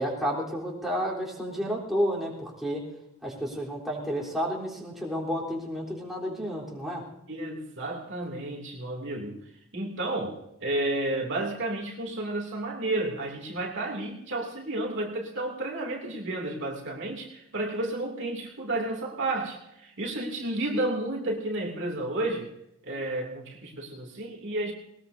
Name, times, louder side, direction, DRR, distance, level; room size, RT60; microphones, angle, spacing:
voice 1, 0.0-2.8 3.2-7.0, equal, ahead, -4 dB, 3.7 m, -31 dB
voice 2, 7.3-9.4 9.7-22.5 22.8-24.7, right 2 dB, 60° right, 0 dB, 2.8 m, -31 dB
20.5 x 20.0 x 2.7 m, 0.80 s
head